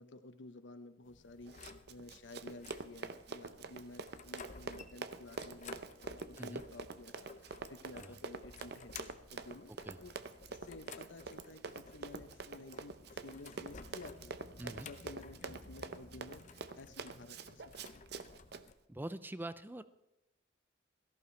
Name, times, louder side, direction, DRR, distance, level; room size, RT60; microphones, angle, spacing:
voice 1, 0.0-9.7 10.0-10.1 10.6-14.3 14.6-18.0, left 2 dB, 70° left, 10 dB, 0.8 m, -53 dB
sound 1, 1.0-18.7, left 4 dB, 40° left, 0.7 m, -55 dB
Run, 1.5-18.6, right 4 dB, 55° right, 0.7 m, -46 dB
voice 2, 18.9-19.8, right 1 dB, 10° right, 13 dB, 0.5 m, -44 dB
17.0 x 14.0 x 3.3 m, 0.92 s
head